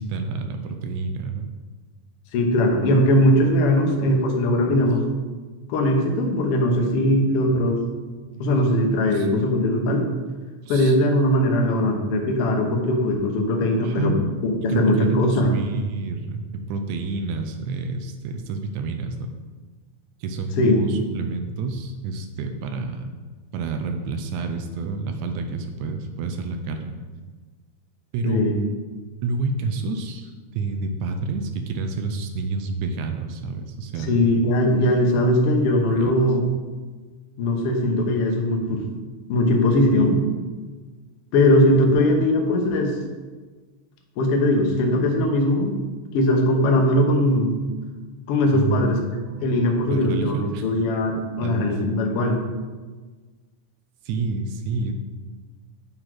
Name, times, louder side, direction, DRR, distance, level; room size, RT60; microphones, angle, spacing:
voice 1, 0.0-1.5 9.1-9.3 10.6-11.0 13.8-14.2 14.7-19.2 20.2-23.1 23.5-26.9 28.1-28.5 29.2-34.2 35.9-36.1 48.5-50.7 51.4-51.8 54.1-54.9, right 3 dB, 80° right, 6 dB, 1.8 m, -29 dB
voice 2, 2.3-5.0 5.7-7.8 8.4-10.0 10.7-14.2 14.4-15.5 20.6-20.7 28.2-28.6 34.1-36.5 37.4-38.8 39.3-40.2 41.3-43.0 44.2-45.8 46.1-47.6 48.3-52.4, left 1 dB, 70° left, 2 dB, 1.3 m, -20 dB
7.8 x 4.0 x 4.5 m, 1.4 s
omnidirectional pair, 3.7 m